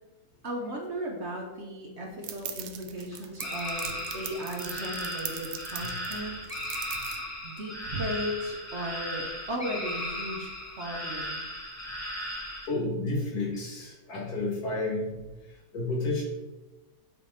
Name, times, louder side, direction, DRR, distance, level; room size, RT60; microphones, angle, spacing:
voice 1, 0.4-6.6 7.4-10.5 10.8-11.4, equal, 50° right, 0 dB, 1.1 m, -36 dB
sound 1, 2.2-7.2, right 9 dB, 80° right, 1.1 m, -40 dB
sound 2, 3.4-12.7, equal, 20° left, 0.4 m, -36 dB
voice 2, 12.7-15.2 15.7-16.2, left 2 dB, 75° left, -2 dB, 1.8 m, -31 dB
8.5 x 3.5 x 3.2 m, 1.1 s
omnidirectional pair, 1.7 m